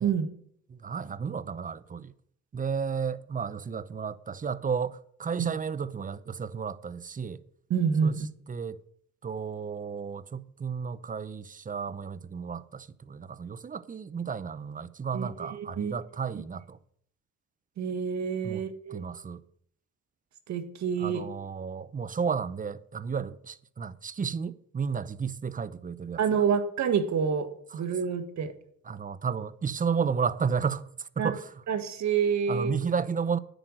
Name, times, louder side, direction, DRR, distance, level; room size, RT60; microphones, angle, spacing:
voice 1, 0.7-2.1 2.5-7.4 8.0-8.2 8.5-8.8 9.2-16.8 18.4-18.6 18.9-19.4 21.0-26.4 27.7-27.8 28.9-31.5 32.5-33.4, right 6 dB, 25° right, 0.7 m, -32 dB
voice 2, 7.7-8.3 15.1-15.9 17.8-19.0 20.5-21.2 26.2-28.5 31.2-31.3 31.7-32.7, right 7 dB, 65° right, 1.6 m, -28 dB
10.0 x 8.1 x 6.3 m
cardioid pair, 90°, 30 cm